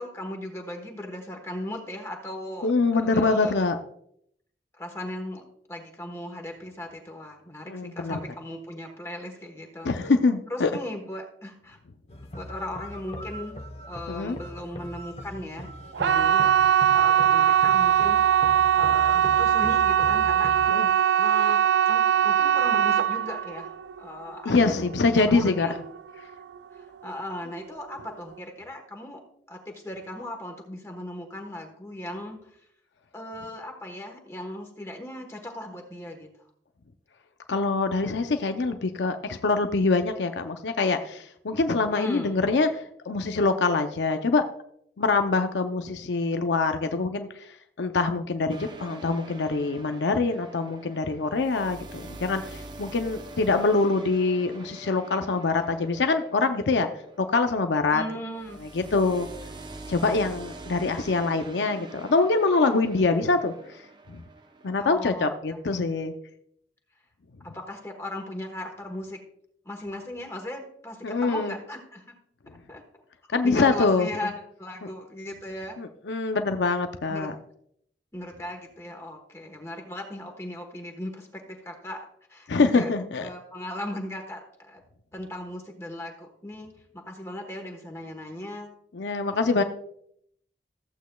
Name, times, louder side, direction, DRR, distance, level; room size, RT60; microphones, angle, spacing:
voice 1, 0.0-3.6 4.7-5.4 5.7-9.9 10.5-11.8 12.4-13.6 13.9-15.7 16.0-16.6 16.9-20.5 21.2-23.7 24.0-24.7 25.2-25.8 26.7-29.2 29.5-32.7 33.1-36.3 41.9-42.4 57.9-58.6 64.8-65.8 67.5-69.2 69.6-72.1 72.7-72.8 73.3-75.8 77.1-77.3 78.1-82.9 83.2-84.8 85.1-88.7, left 1 dB, 15° left, 2 dB, 1.2 m, -38 dB
voice 2, 2.6-3.8 7.7-8.2 9.8-10.7 14.1-14.4 20.7-20.9 24.4-25.8 37.5-44.4 45.0-56.9 57.2-58.0 58.7-59.3 59.9-63.5 64.1-64.2 64.6-66.1 71.0-71.5 73.3-74.1 75.8-77.3 82.5-83.3 88.9-89.6, left 3 dB, 90° left, 6 dB, 0.6 m, -24 dB
sound 1, 12.1-20.7, equal, 35° left, 0.9 m, -40 dB
sound 2, 15.9-26.8 27.1-27.6 28.0-28.1, right 9 dB, 85° right, 0.4 m, -21 dB
sound 3, 48.5-58.0 58.3-64.8, right 2 dB, 25° right, 0.5 m, -45 dB
14.5 x 8.2 x 2.3 m, 0.69 s
head